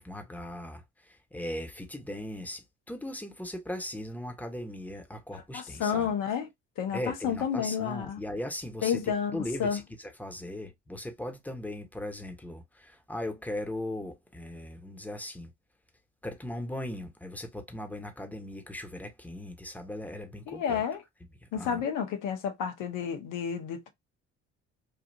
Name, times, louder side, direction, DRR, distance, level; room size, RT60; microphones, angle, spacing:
voice 1, 0.0-6.1 6.9-15.5 16.2-20.8 21.5-21.8, left 1 dB, 5° left, 1.1 m, -38 dB
voice 2, 5.5-6.5 6.8-8.2 8.8-9.8 20.5-21.0 21.5-23.9, left 7 dB, 65° left, 1.1 m, -30 dB
3.4 x 2.4 x 2.6 m
hypercardioid pair, 55°, 35 cm